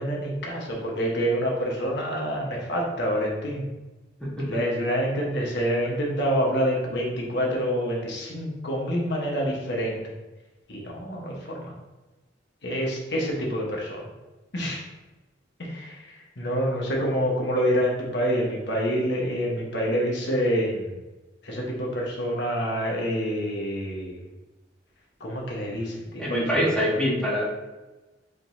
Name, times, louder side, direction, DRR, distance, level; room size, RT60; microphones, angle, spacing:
voice 1, 0.0-3.7 4.4-10.0 10.7-11.7 12.6-14.0 14.5-14.8 15.6-16.0 16.4-21.0 21.4-24.2 25.2-26.5 26.9-27.0, equal, 65° left, -2 dB, 1.1 m, -27 dB
voice 2, 26.2-27.4, equal, 5° left, -7 dB, 1.3 m, -24 dB
5.1 x 3.8 x 2.7 m, 1.1 s
head